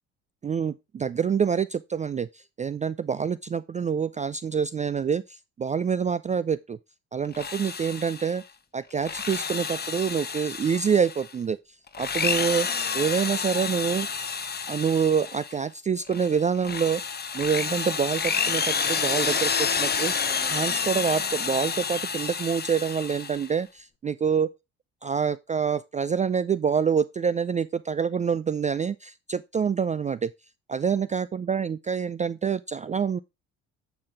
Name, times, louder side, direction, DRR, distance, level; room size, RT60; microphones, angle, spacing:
voice 1, 0.4-6.8 7.1-8.4 8.7-11.6 12.0-12.7 12.9-14.1 14.7-17.0 17.3-20.1 20.5-24.5 25.0-30.3 30.7-33.2, right 6 dB, 20° right, 0.3 m, -26 dB
Drill, 7.2-8.4 8.9-11.3 11.9-15.6 16.1-23.5, left 6 dB, 25° left, 1.0 m, -29 dB
8.7 x 5.9 x 3.6 m
hypercardioid pair, 65°, 36 cm